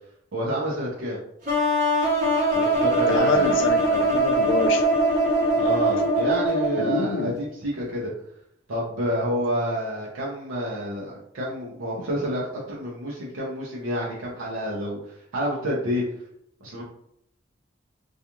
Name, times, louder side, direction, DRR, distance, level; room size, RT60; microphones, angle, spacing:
voice 1, 0.3-1.2 2.5-3.6 5.5-8.1 8.7-15.0 15.3-16.0 16.6-16.8, equal, 90° right, -5 dB, 0.6 m, -29 dB
sound 1, 1.5-7.3, right 1 dB, 40° right, 0.8 m, -22 dB
voice 2, 3.1-4.9 6.8-7.3, left 4 dB, 70° left, 7 dB, 0.4 m, -27 dB
2.4 x 2.3 x 2.9 m, 0.74 s
head